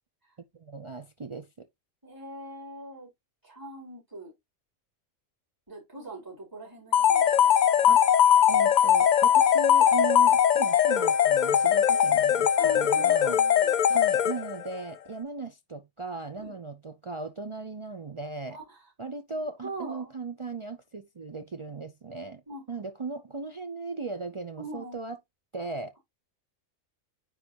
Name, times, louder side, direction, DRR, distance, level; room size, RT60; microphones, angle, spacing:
voice 1, 0.5-1.7 7.9-8.0 8.5-13.4 13.9-18.6 19.0-22.4 22.7-25.2 25.5-26.0, right 3 dB, 45° right, 0.4 m, -37 dB
voice 2, 2.0-3.1 3.4-4.3 5.7-7.9 12.6-13.7 16.4-16.6 18.5-18.9 19.6-20.1 22.5-22.6 24.6-25.0, right 1 dB, 15° right, 4.6 m, -42 dB
sound 1, 6.9-14.7, left 9 dB, 85° left, 0.4 m, -21 dB
9.6 x 4.0 x 2.8 m
omnidirectional pair, 1.4 m